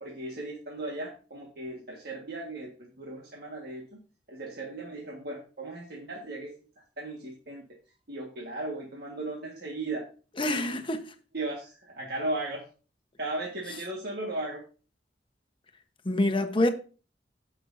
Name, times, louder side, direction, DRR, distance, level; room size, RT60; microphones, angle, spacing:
voice 1, 0.0-3.9 4.3-6.5 7.0-7.6 8.1-10.0 10.4-10.8 11.3-12.6 13.2-14.6, right 2 dB, 60° right, 1.6 m, -36 dB
voice 2, 10.4-11.0 16.0-16.7, left 1 dB, 30° left, 1.0 m, -26 dB
15.5 x 6.2 x 2.7 m
head